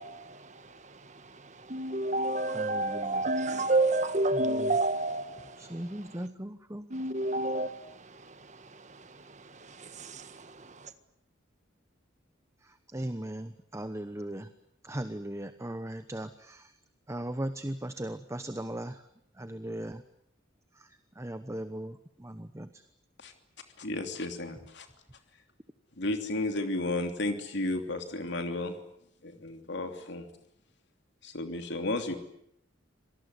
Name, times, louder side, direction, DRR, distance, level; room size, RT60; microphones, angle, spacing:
voice 1, 0.0-6.2 6.9-10.9, right 2 dB, 35° right, 1.7 m, -31 dB
voice 2, 2.5-3.2 4.3-4.7 5.6-6.9 12.9-14.5 14.8-16.7 17.1-19.0 19.4-20.0 20.8-20.9 21.2-22.8, right 1 dB, 15° right, 1.0 m, -38 dB
voice 3, 23.8-24.9 26.0-28.8 29.2-30.3 31.2-32.1, left 2 dB, 60° left, 3.1 m, -33 dB
26.5 x 19.0 x 9.6 m
head